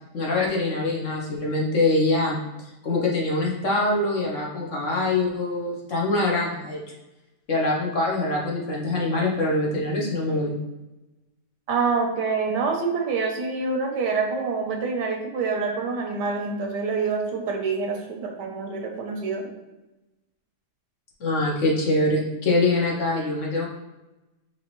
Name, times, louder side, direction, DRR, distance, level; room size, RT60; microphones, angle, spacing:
voice 1, 0.1-2.4 2.8-6.8 7.5-10.6 21.2-23.7, left 2 dB, 55° left, -3 dB, 1.0 m, -24 dB
voice 2, 11.7-19.5, right 4 dB, 85° right, 2 dB, 1.4 m, -26 dB
5.4 x 2.9 x 3.0 m, 1.0 s
omnidirectional pair, 1.8 m